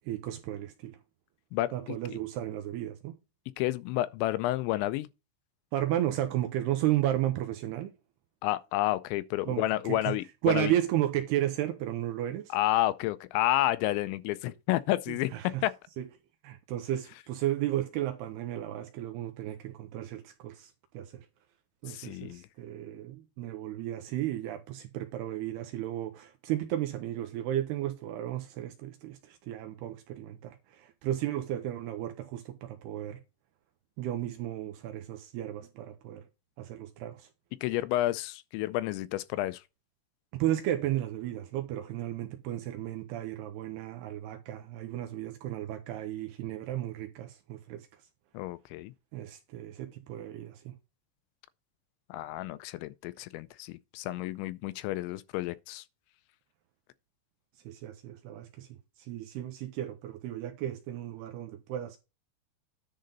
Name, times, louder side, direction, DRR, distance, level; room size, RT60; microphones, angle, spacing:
voice 1, 0.1-1.0 1.7-3.2 5.7-7.9 9.5-10.1 10.4-12.5 15.1-15.6 16.0-16.1 16.4-21.1 21.8-33.2 34.0-36.2 36.6-37.3 40.3-47.9 49.1-50.7 57.7-58.7 59.1-62.0, right 13 dB, 80° right, 2.5 m, -33 dB
voice 2, 1.5-2.2 3.6-5.1 8.4-10.7 12.5-15.3 15.6-15.7 21.9-22.4 37.6-39.6 48.3-48.9 52.1-55.8, left 15 dB, 85° left, 2.8 m, -30 dB
10.5 x 3.8 x 5.2 m
omnidirectional pair, 5.4 m